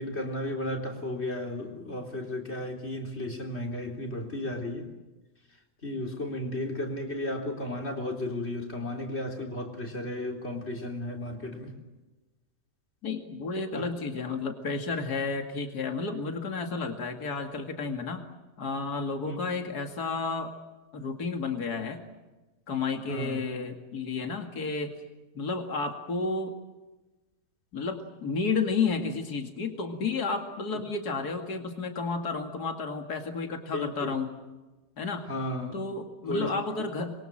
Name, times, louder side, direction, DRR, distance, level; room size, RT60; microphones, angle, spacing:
voice 1, 0.0-4.9 5.8-11.7 13.7-13.9 19.2-19.4 23.1-23.4 33.7-34.1 35.3-35.7 36.3-36.5, left 1 dB, 40° left, 4.0 m, -34 dB
voice 2, 13.0-18.2 18.6-20.5 20.9-22.0 22.7-24.9 25.3-26.5 27.7-34.3 35.0-35.3 35.7-37.1, left 4 dB, 70° left, 2.8 m, -31 dB
26.5 x 23.0 x 7.6 m
omnidirectional pair, 1.7 m